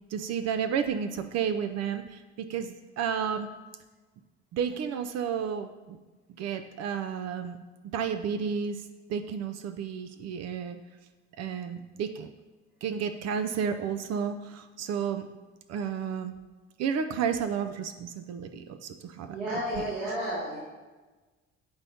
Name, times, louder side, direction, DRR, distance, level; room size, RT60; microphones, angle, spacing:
voice 1, 0.1-3.5 4.5-6.0 6.4-7.6 7.9-8.8 9.1-10.8 11.4-12.3 12.8-15.3 15.7-16.4 16.8-19.9, right 7 dB, 50° right, 9 dB, 0.5 m, -32 dB
voice 2, 19.3-20.6, equal, 70° right, -9 dB, 1.9 m, -32 dB
8.6 x 4.1 x 2.8 m, 1.3 s
hypercardioid pair, 55°, 33 cm